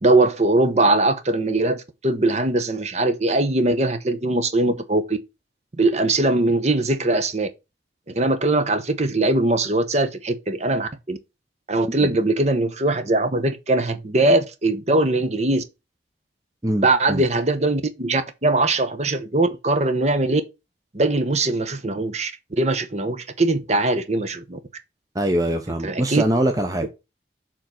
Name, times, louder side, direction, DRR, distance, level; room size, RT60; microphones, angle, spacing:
voice 1, 0.0-5.2 5.8-7.5 8.1-11.2 11.7-15.6 16.8-20.4 20.9-24.6 25.8-26.2, right 2 dB, 40° right, 0.9 m, -21 dB
voice 2, 16.6-17.2 25.1-26.9, right 1 dB, 20° right, 0.7 m, -23 dB
7.1 x 3.8 x 4.3 m
head